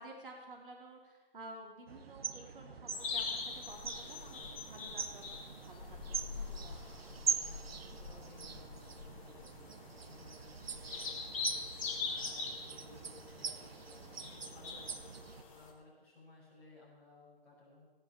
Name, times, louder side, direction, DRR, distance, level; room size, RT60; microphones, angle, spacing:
voice 1, 0.0-6.8, right 2 dB, 60° right, 0 dB, 3.9 m, -52 dB
sound 1, 1.9-15.4, right 6 dB, 80° right, 1.1 m, -43 dB
sound 2, 2.9-15.7, left 5 dB, 35° left, 2.3 m, -43 dB
voice 2, 7.3-15.1 15.5-17.9, left 2 dB, 5° left, -11 dB, 5.6 m, -59 dB
17.0 x 10.5 x 7.1 m, 1.1 s
hypercardioid pair, 165°, 30 cm